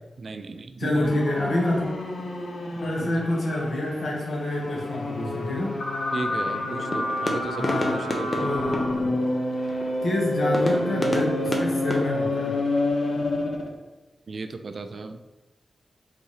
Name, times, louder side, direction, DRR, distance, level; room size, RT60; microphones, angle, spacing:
voice 1, 0.2-1.2 3.0-3.3 6.1-8.5 14.3-15.2, right 3 dB, 50° right, 7 dB, 0.3 m, -34 dB
voice 2, 0.8-1.9 2.8-5.7 7.6-8.0 8.4-8.9 10.0-12.5, left 1 dB, 50° left, -3 dB, 1.2 m, -27 dB
sound 1, 1.0-13.7, left 1 dB, 85° left, 0.7 m, -28 dB
sound 2, 6.3-12.9, left 1 dB, 25° left, 0.6 m, -32 dB
4.1 x 3.6 x 3.2 m, 1.2 s
wide cardioid pair, 145°, 0 cm